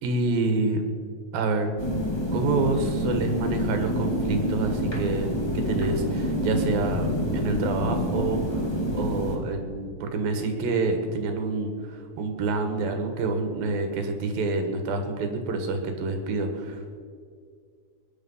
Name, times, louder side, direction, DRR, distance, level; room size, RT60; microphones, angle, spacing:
voice 1, 0.0-0.9 1.3-1.7 2.3-8.7 8.9-17.0, right 3 dB, 90° right, 6 dB, 3.5 m, -27 dB
sound 1, 1.8-9.4, equal, 15° left, 1.0 m, -27 dB
21.5 x 10.5 x 5.7 m, 2.2 s
omnidirectional pair, 4.0 m